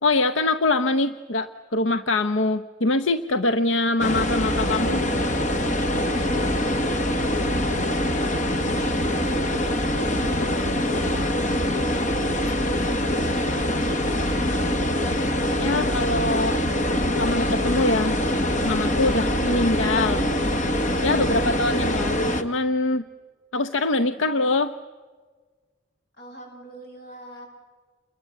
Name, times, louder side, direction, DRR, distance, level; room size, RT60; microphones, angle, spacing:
voice 1, 0.0-5.1 15.6-16.6 17.2-18.2 18.6-20.5 21.0-23.0 23.5-24.7, left 2 dB, 85° left, 11 dB, 0.8 m, -24 dB
sound 1, 4.0-22.4, left 1 dB, 40° left, 1.3 m, -24 dB
voice 2, 6.0-8.4 8.8-11.3 11.9-14.4 26.2-27.5, equal, 55° left, 2 dB, 7.5 m, -46 dB
29.5 x 21.5 x 8.3 m, 1.4 s
head